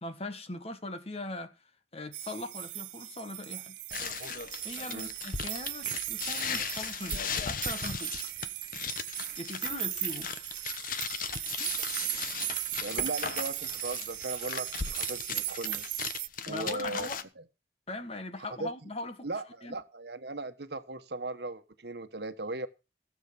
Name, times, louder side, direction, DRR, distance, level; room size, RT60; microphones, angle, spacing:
voice 1, 0.0-1.5 1.9-3.8 4.6-8.1 9.4-10.5 11.6-11.8 16.5-17.2 17.9-19.3 19.6-19.8, left 2 dB, 35° left, 1.5 m, -40 dB
sound 1, 2.1-16.3, right 18 dB, 80° right, 0.6 m, -38 dB
sound 2, 3.9-17.2, left 6 dB, 50° left, 1.1 m, -37 dB
sound 3, 9.6-14.8, right 9 dB, 25° right, 3.7 m, -41 dB
voice 2, 12.8-15.8 16.5-17.1 17.4-17.5 18.6-18.7 19.2-22.7, right 2 dB, 65° right, 1.3 m, -38 dB
17.0 x 7.5 x 5.8 m
head